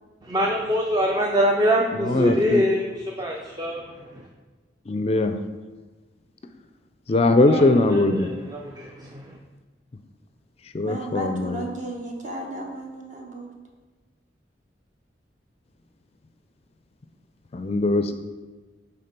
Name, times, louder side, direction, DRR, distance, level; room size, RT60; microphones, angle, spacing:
voice 1, 0.2-4.3 7.4-9.3, equal, 20° right, 0 dB, 0.6 m, -24 dB
voice 2, 1.9-2.6 4.9-5.3 7.1-8.3 10.7-11.6 17.5-18.1, left 2 dB, 35° left, 8 dB, 0.4 m, -20 dB
voice 3, 10.8-13.5, right 1 dB, 45° right, 1 dB, 1.2 m, -34 dB
8.8 x 3.6 x 5.2 m, 1.3 s
head